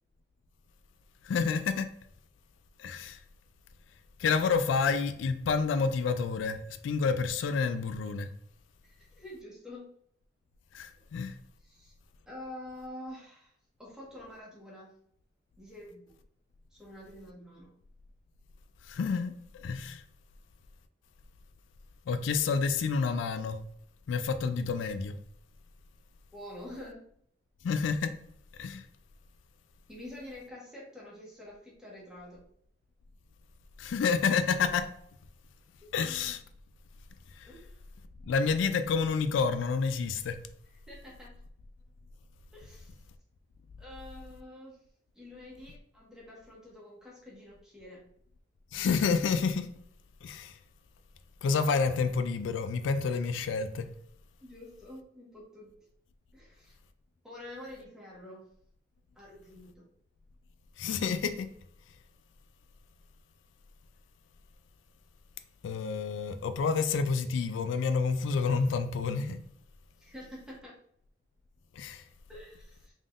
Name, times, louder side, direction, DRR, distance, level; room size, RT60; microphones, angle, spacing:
voice 1, 1.2-1.9 2.8-3.2 4.2-8.3 10.7-11.4 18.9-20.0 22.1-23.6 24.1-25.2 27.6-28.1 28.6-28.8 33.8-35.0 35.9-36.4 37.4-37.5 38.2-40.4 48.7-49.7 50.2-50.6 51.4-53.9 60.8-61.5 65.6-69.4 71.7-72.0, left 5 dB, 90° left, 0.3 m, -29 dB
voice 2, 8.8-9.9 11.6-11.9 12.2-13.5 13.8-14.9 15.6-16.2 16.7-17.7 26.3-27.0 29.9-32.4 35.8-35.9 37.4-37.8 40.9-41.4 42.5-43.0 43.8-44.8 45.1-48.1 54.4-55.7 56.3-56.8 57.2-58.4 59.1-59.9 70.0-70.8 72.3-72.8, left 1 dB, 5° right, 1.4 m, -47 dB
3.7 x 3.5 x 2.5 m
head